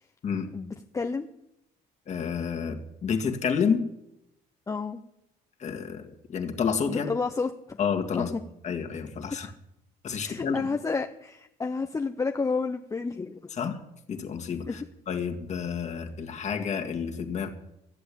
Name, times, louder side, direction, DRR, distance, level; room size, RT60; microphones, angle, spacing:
voice 1, 0.5-1.3 4.7-5.0 6.9-7.8 8.1-8.4 10.2-13.5 14.7-14.8, left 4 dB, 20° left, 4 dB, 0.6 m, -30 dB
voice 2, 2.1-3.9 5.6-7.1 7.8-8.3 8.6-9.5 10.0-10.7 13.6-13.8 14.1-14.8 15.1-17.5, left 6 dB, 45° left, 4 dB, 1.9 m, -29 dB
14.0 x 7.9 x 8.4 m, 0.82 s
cardioid pair, 110°, 17 cm